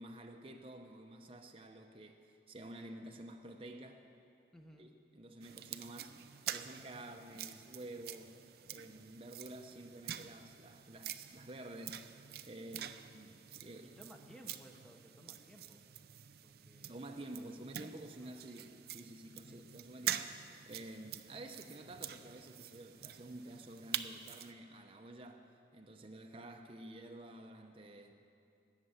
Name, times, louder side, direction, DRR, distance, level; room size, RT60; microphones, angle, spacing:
voice 1, 0.0-4.0 4.8-8.4 8.7-13.9 16.9-28.1, right 1 dB, 30° right, 3 dB, 0.8 m, -50 dB
voice 2, 4.5-4.9 12.7-13.0 14.0-15.8 16.4-17.0 18.2-18.3 19.5-19.6, equal, 5° left, 2 dB, 1.0 m, -58 dB
sound 1, 5.4-24.5, right 10 dB, 60° right, 0.5 m, -46 dB
19.5 x 6.8 x 8.2 m, 2.5 s
head